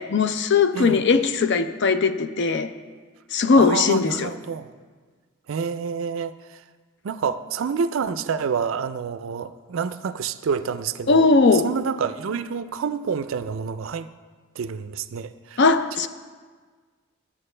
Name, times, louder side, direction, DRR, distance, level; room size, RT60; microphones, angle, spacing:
voice 1, 0.0-2.7 3.3-4.3 11.1-11.7 15.6-16.1, left 4 dB, 55° left, 11 dB, 0.5 m, -19 dB
voice 2, 3.6-4.7 5.5-6.3 7.0-11.3 11.5-14.1 14.6-15.6, right 6 dB, 70° right, 13 dB, 0.4 m, -28 dB
13.0 x 8.7 x 3.3 m, 1.5 s
head